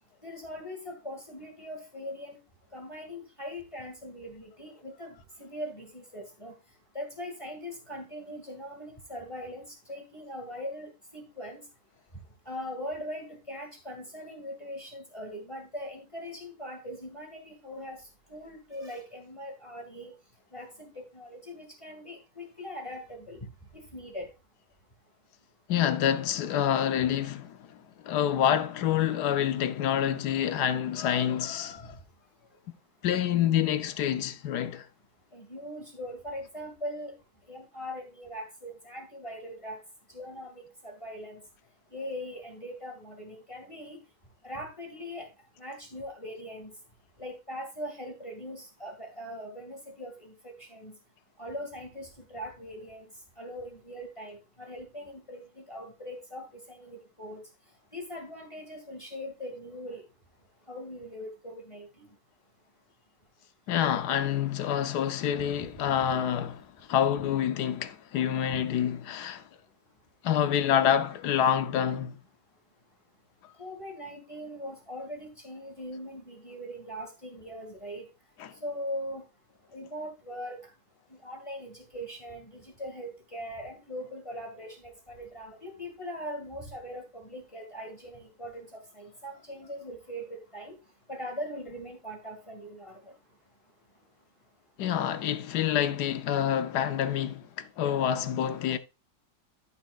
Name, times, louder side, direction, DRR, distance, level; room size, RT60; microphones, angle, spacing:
voice 1, 0.2-2.4 2.7-6.5 6.9-11.6 12.5-18.0 18.3-20.1 20.5-23.4 23.7-24.3 35.3-37.1 37.5-39.8 40.1-41.4 41.9-44.0 44.4-45.3 45.6-46.7 47.2-50.9 51.4-53.1 53.4-57.4 57.9-60.0 60.7-62.1 73.6-78.0 78.6-79.2 79.7-80.6 81.2-90.7 91.1-93.0, equal, 15° left, 2.0 m, -41 dB
voice 2, 25.7-27.8 28.0-32.0 32.7-32.8 33.0-34.9 63.7-69.4 70.2-72.2 78.4-78.5 94.8-98.8, left 9 dB, 70° left, 1.2 m, -27 dB
14.0 x 5.8 x 2.4 m
omnidirectional pair, 1.9 m